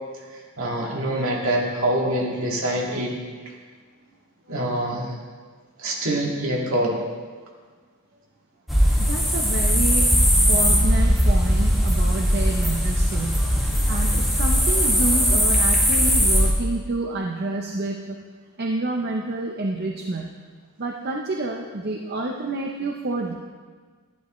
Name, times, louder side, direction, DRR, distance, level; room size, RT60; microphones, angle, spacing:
voice 1, 0.3-3.1 4.5-5.2 5.8-7.1, right 1 dB, 65° right, -3 dB, 2.2 m, -25 dB
sound 1, 8.7-16.5, equal, ahead, 1.8 m, -19 dB
voice 2, 9.0-10.1 10.5-13.5 13.9-18.2 18.6-20.3 20.8-23.3, right 2 dB, 45° right, 1 dB, 0.7 m, -28 dB
11.5 x 11.5 x 3.1 m, 1.5 s
head